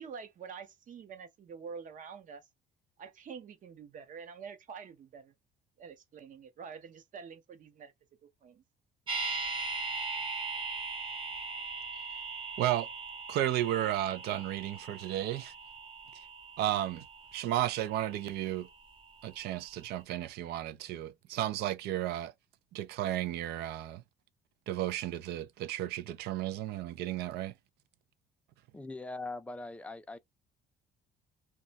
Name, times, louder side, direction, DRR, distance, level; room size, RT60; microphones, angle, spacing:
voice 1, 0.0-2.5 3.0-5.3 5.8-7.9 8.2-8.6, right 6 dB, 50° right, 0.8 m, -47 dB
sound 1, 9.1-19.1 19.4-19.5, right 4 dB, 30° right, 1.0 m, -40 dB
voice 2, 12.6-12.9 13.3-15.5 16.6-17.1 17.3-18.7 19.2-22.3 22.7-24.0 24.7-27.5, right 13 dB, 75° right, 0.5 m, -33 dB
voice 3, 28.7-30.2, left 2 dB, 5° left, 0.4 m, -41 dB
2.3 x 2.1 x 3.9 m
cardioid pair, 110°, 17 cm